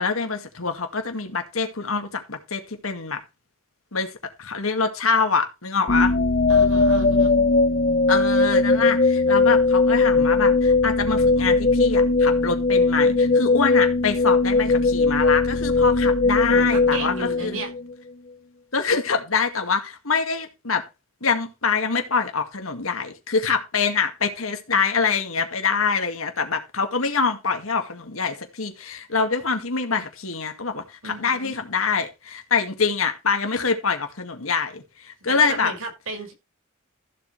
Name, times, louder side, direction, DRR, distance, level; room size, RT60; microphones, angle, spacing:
voice 1, 0.0-3.2 3.9-4.1 4.4-6.1 8.1-17.6 18.7-20.8 21.2-35.7, left 5 dB, 90° left, 2.1 m, -25 dB
sound 1, 5.9-17.9, left 3 dB, 40° left, 0.6 m, -19 dB
voice 2, 6.5-7.4 16.5-17.7 31.0-31.6 35.2-36.3, right 2 dB, 80° right, 5.8 m, -33 dB
15.0 x 7.8 x 3.3 m
head